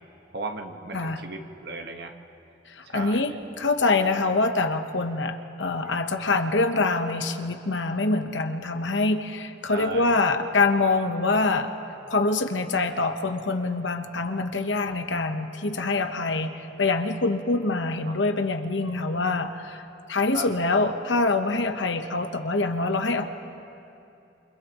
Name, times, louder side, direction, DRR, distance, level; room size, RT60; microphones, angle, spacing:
voice 1, 0.3-2.1 2.9-3.2 5.8-6.0 9.7-10.2 18.1-18.2 20.3-20.4, right 2 dB, 60° right, 4 dB, 1.5 m, -36 dB
voice 2, 0.9-1.2 2.7-11.7 12.1-19.8 20.1-23.3, left 3 dB, 75° left, 6 dB, 1.1 m, -25 dB
29.5 x 28.5 x 3.1 m, 2.8 s
head